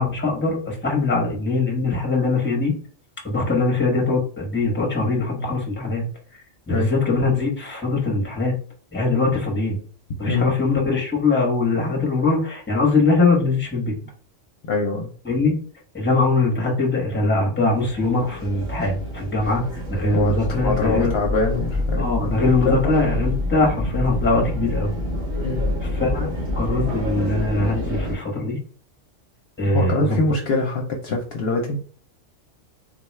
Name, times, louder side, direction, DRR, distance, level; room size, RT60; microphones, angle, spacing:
voice 1, 0.0-2.7 3.2-6.0 6.7-8.6 8.9-9.8 10.2-14.0 15.2-15.6 15.9-21.1 22.0-24.9 25.8-26.3 26.6-28.6 29.6-30.2, left 3 dB, 10° left, -1 dB, 0.9 m, -22 dB
voice 2, 14.7-15.1 20.1-23.2 25.4-25.6 29.7-31.8, left 3 dB, 60° left, 1 dB, 0.8 m, -24 dB
sound 1, 17.7-28.2, left 1 dB, 90° right, 1.7 m, -27 dB
3.9 x 2.3 x 3.1 m, 0.44 s
omnidirectional pair, 1.3 m